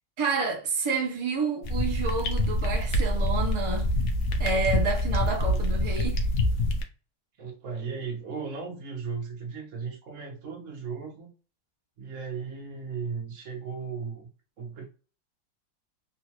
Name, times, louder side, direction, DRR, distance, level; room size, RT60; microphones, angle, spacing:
voice 1, 0.2-3.9 4.4-6.2, right 4 dB, 30° right, 0.6 m, -29 dB
sound 1, 1.6-6.8, left 1 dB, 60° left, 0.9 m, -26 dB
voice 2, 7.4-11.3 12.0-14.3 14.6-14.8, right 5 dB, 55° right, 1.3 m, -36 dB
3.6 x 2.5 x 2.9 m
omnidirectional pair, 1.7 m